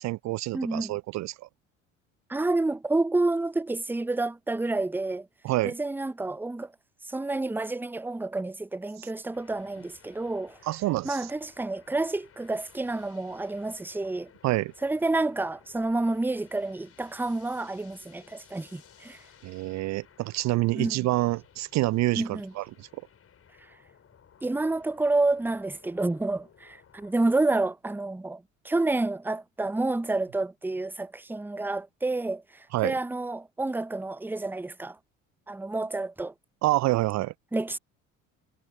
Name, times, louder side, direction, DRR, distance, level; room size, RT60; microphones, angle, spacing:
voice 1, 0.0-1.5 5.4-5.7 9.0-9.1 10.6-11.3 14.4-14.7 19.4-22.9 32.7-33.0 36.6-37.3, right 18 dB, 45° right, 0.6 m, -27 dB
voice 2, 0.5-0.9 2.3-5.3 5.6-6.7 7.1-10.6 11.0-14.3 14.8-19.2 20.7-20.9 22.1-22.5 24.4-35.0 35.5-36.3 37.5-37.8, right 2 dB, 5° right, 0.9 m, -29 dB
sound 1, 9.3-27.1, left 8 dB, 35° left, 4.6 m, -58 dB
figure-of-eight pair, 60°, 39 cm